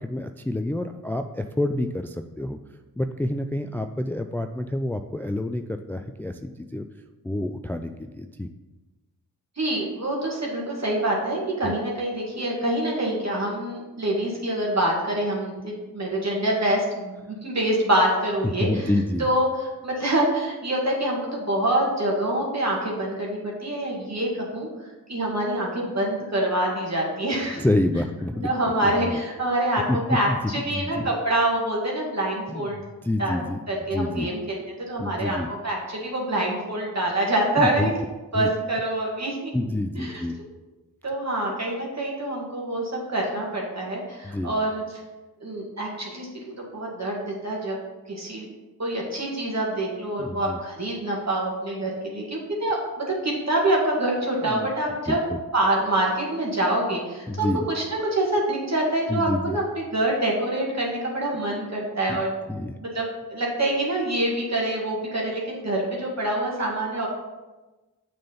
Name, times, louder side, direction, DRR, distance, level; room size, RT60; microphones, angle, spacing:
voice 1, 0.0-2.6 3.0-6.9 7.2-8.5 11.6-11.7 18.6-19.3 27.6-28.5 28.8-29.2 29.9-31.1 32.5-33.6 33.9-34.3 35.0-35.5 37.6-37.9 38.3-38.5 39.5-40.4 44.2-44.5 50.2-50.6 54.4-54.7 55.1-55.2 57.3-57.6 59.1-59.6 62.1-62.2 62.5-62.7, left 1 dB, 5° left, 7 dB, 0.4 m, -28 dB
voice 2, 9.6-18.9 19.2-24.7 25.1-27.6 28.4-32.8 33.2-33.4 33.7-34.6 34.9-37.9 38.3-39.5 40.0-40.2 41.0-44.8 45.4-47.8 48.1-48.5 48.8-55.2 55.5-57.5 57.7-62.3 62.8-67.1, right 1 dB, 45° right, -3 dB, 2.0 m, -26 dB
6.2 x 4.4 x 5.6 m, 1.1 s
cardioid pair, 45°, 37 cm